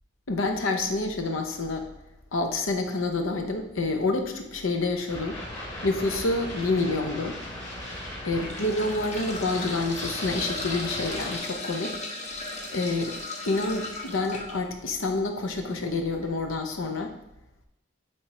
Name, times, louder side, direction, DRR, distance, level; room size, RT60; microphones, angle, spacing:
voice 1, 0.3-1.9 2.3-5.4 5.8-7.4 8.2-12.0 12.7-13.2 13.5-17.1, left 2 dB, 80° left, 6 dB, 0.8 m, -28 dB
sound 1, 5.1-11.4, left 1 dB, 15° left, 2.7 m, -38 dB
sound 2, 6.4-6.5 7.1-7.2 8.1-14.5 16.1-16.2 16.5-16.6, left 2 dB, 35° left, 1.1 m, -36 dB
8.7 x 3.5 x 4.4 m, 0.88 s
head